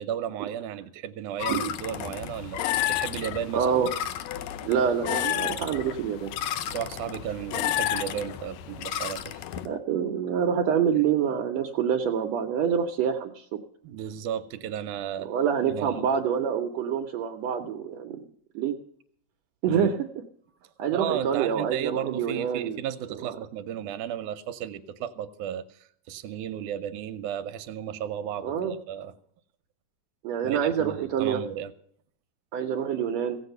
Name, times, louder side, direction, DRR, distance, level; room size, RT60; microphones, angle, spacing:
voice 1, 0.0-3.7 6.7-9.4 13.8-15.3 15.7-16.1 19.7-19.9 20.9-25.7 26.1-28.6 28.9-29.2 30.4-31.7, right 10 dB, 85° right, 11 dB, 2.2 m, -34 dB
sound 1, 1.4-9.7, left 12 dB, 75° left, 1.8 m, -31 dB
voice 2, 3.5-3.9 4.6-6.3 9.6-13.6 15.2-18.2 18.5-18.7 19.6-20.0 20.8-22.8 23.2-23.4 28.4-28.7 30.2-31.4 32.5-33.4, right 8 dB, 70° right, 5 dB, 1.9 m, -26 dB
16.5 x 8.1 x 6.6 m, 0.64 s
omnidirectional pair, 3.5 m